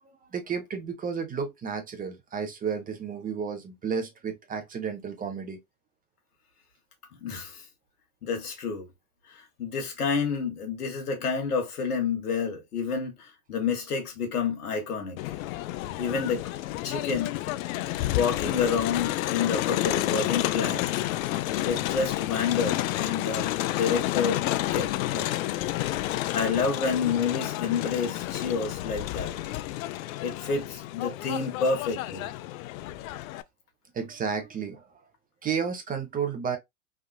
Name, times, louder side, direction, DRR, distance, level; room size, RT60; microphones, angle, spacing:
voice 1, 0.0-5.6 33.9-34.8 35.4-36.6, right 6 dB, 20° right, 0.6 m, -32 dB
voice 2, 7.2-7.6 8.2-8.8 9.6-15.2 16.0-16.5 16.8-17.3 18.1-20.9 21.6-24.4 24.7-25.3 26.3-29.3 30.2-32.3, left 5 dB, 90° left, 1.3 m, -29 dB
Crowd, 15.2-33.4, left 15 dB, 65° left, 0.5 m, -30 dB
3.5 x 2.3 x 2.2 m
hypercardioid pair, 105°, 44 cm